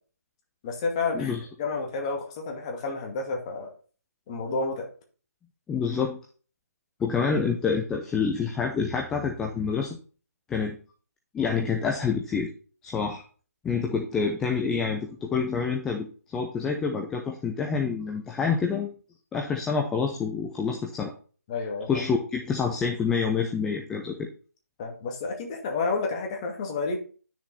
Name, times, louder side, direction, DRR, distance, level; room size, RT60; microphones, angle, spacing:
voice 1, 0.6-1.3 1.6-3.7 4.3-4.9 21.5-22.0 24.8-27.0, left 4 dB, 20° left, 1 dB, 2.1 m, -30 dB
voice 2, 5.7-6.2 7.0-10.0 10.5-10.8 11.3-12.5 12.8-13.2 13.6-18.9 19.3-21.1 21.9-24.3, left 5 dB, 5° left, 1 dB, 0.6 m, -27 dB
10.0 x 6.5 x 4.3 m, 0.39 s
figure-of-eight pair, 150°, 9 cm